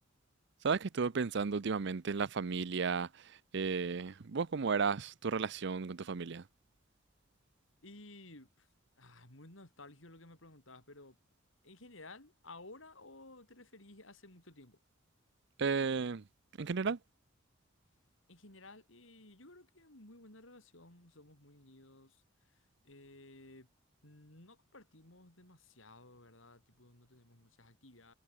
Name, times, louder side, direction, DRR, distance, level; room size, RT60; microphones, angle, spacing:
voice 1, 0.6-6.5 15.6-16.2 16.6-17.0, right 5 dB, 60° right, 0.6 m, -34 dB
voice 2, 7.8-8.7 9.0-11.2 11.6-14.8 18.3-22.2 22.8-23.7 24.0-28.1, left 2 dB, 75° left, 5.8 m, -55 dB
head